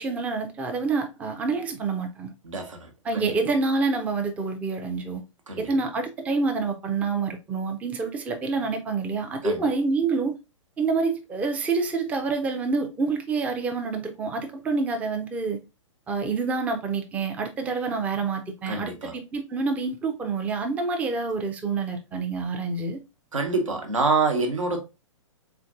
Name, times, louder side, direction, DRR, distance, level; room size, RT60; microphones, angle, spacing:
voice 1, 0.0-2.3 3.0-5.2 5.6-10.4 10.8-15.6 16.1-23.0, right 4 dB, 10° right, 0.4 m, -27 dB
voice 2, 2.4-3.4 5.5-5.6 9.4-9.7 18.7-19.1 23.3-24.8, right 3 dB, 75° right, 1.0 m, -26 dB
3.6 x 3.3 x 2.4 m
figure-of-eight pair, 115°, 17 cm